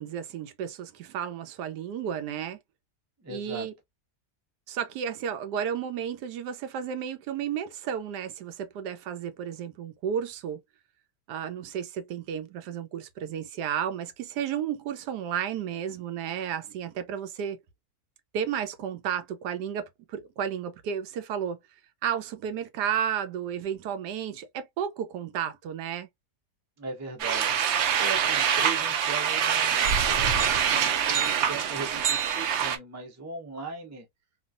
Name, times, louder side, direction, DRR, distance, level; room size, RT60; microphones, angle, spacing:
voice 1, 0.0-2.6 3.3-3.7 4.7-10.6 11.3-17.6 18.3-21.6 22.0-26.1, right 8 dB, 85° right, 1.2 m, -32 dB
voice 2, 3.2-3.7 26.8-27.6 28.0-34.1, right 4 dB, 20° right, 0.4 m, -39 dB
sound 1, 27.2-32.8, right 8 dB, 70° right, 0.6 m, -25 dB
3.1 x 2.3 x 2.4 m
omnidirectional pair, 1.7 m